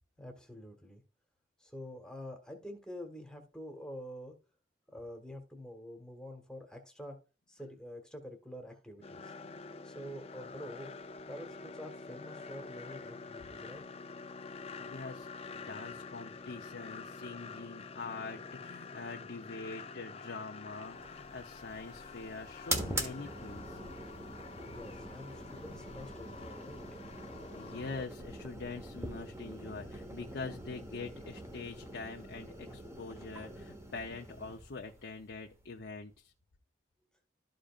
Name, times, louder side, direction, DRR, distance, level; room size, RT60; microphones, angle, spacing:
voice 1, 0.2-1.0 1.6-4.4 4.9-7.2 7.5-9.3 9.8-10.9 11.3-13.9 24.7-26.8, equal, 5° left, 4 dB, 1.4 m, -47 dB
sound 1, 9.0-28.1, left 4 dB, 35° left, 0.5 m, -47 dB
voice 2, 9.4-9.7 14.5-23.8 27.6-36.3, left 3 dB, 75° left, 2 dB, 0.7 m, -44 dB
sound 2, 20.8-36.1, right 1 dB, 15° right, 1.3 m, -44 dB
12.5 x 5.1 x 2.5 m, 0.31 s
head